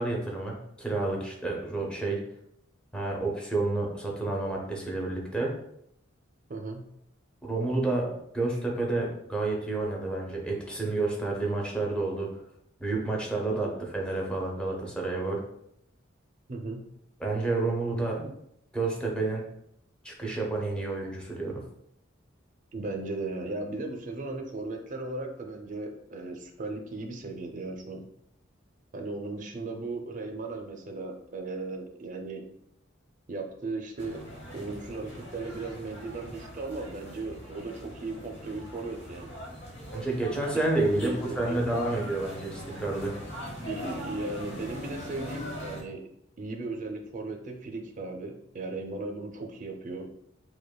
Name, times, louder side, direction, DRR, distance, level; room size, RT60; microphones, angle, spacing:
voice 1, 0.0-2.2 2.9-5.6 7.4-8.1 8.3-12.3 12.8-15.4 17.2-18.2 18.7-19.4 20.0-21.6 39.9-43.1, right 2 dB, 5° left, -1 dB, 0.6 m, -29 dB
voice 2, 6.5-6.9 13.5-13.8 16.5-16.8 18.2-18.3 22.7-28.0 28.9-32.4 33.3-34.2 34.5-39.3 40.7-41.6 43.7-46.0 46.4-50.1, right 2 dB, 40° right, 4 dB, 0.5 m, -36 dB
sound 1, 34.0-45.8, equal, 60° left, 1.2 m, -42 dB
5.1 x 2.2 x 2.2 m, 0.75 s
head